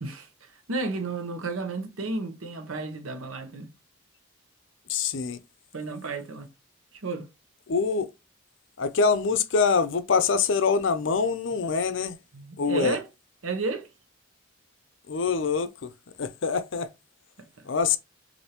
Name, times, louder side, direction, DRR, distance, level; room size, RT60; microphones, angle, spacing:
voice 1, 0.0-3.7 5.7-6.5 7.0-7.3 12.3-13.1 13.4-13.9 17.4-17.5, right 3 dB, 85° right, 0.9 m, -32 dB
voice 2, 4.9-5.4 7.7-8.1 8.8-12.2 12.6-13.0 15.1-15.9 16.2-16.9 17.7-18.0, left 5 dB, 65° left, 0.5 m, -24 dB
6.5 x 2.6 x 2.9 m
head